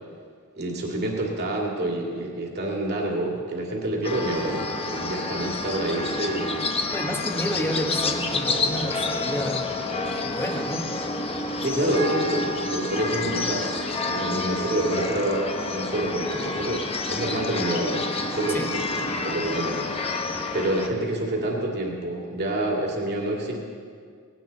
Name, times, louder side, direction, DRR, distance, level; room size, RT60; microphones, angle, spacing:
voice 1, 0.6-6.7 11.6-20.1 20.5-23.6, right 1 dB, 50° right, -1 dB, 2.5 m, -28 dB
sound 1, 4.0-20.9, left 3 dB, 25° left, 1.1 m, -29 dB
voice 2, 6.9-9.7 10.2-10.9 18.5-18.7, equal, 10° left, 3 dB, 1.3 m, -30 dB
19.0 x 17.0 x 4.1 m, 2.1 s
head